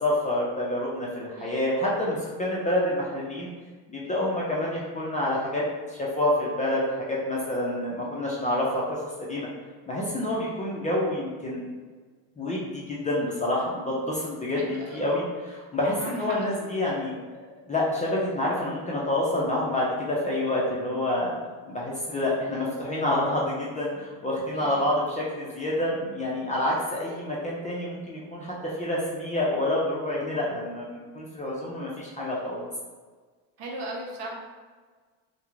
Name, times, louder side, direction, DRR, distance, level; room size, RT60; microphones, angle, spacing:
voice 1, 0.0-3.5 3.9-9.5 9.9-11.6 12.4-17.4 17.7-32.6, left 1 dB, 20° left, -5 dB, 0.4 m, -28 dB
voice 2, 14.6-15.1 16.0-16.7 24.5-24.8 33.6-34.4, right 1 dB, 65° right, -1 dB, 0.7 m, -38 dB
2.3 x 2.1 x 3.0 m, 1.4 s
supercardioid pair, 100°, 44 cm